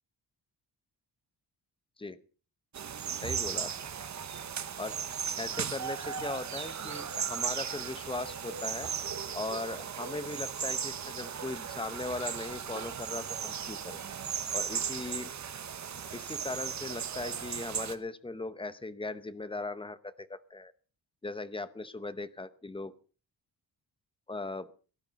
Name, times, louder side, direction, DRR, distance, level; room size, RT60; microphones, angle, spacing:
sound 1, 2.7-17.9, right 7 dB, 40° right, 1.1 m, -36 dB
voice 1, 3.1-3.7 4.8-5.0 5.4-8.9 9.3-14.0 14.5-15.3 16.1-20.7 21.2-22.9 24.3-24.7, left 2 dB, 10° left, 13 dB, 0.8 m, -38 dB
17.5 x 12.0 x 5.2 m, 0.39 s
wide cardioid pair, 180°, 43 cm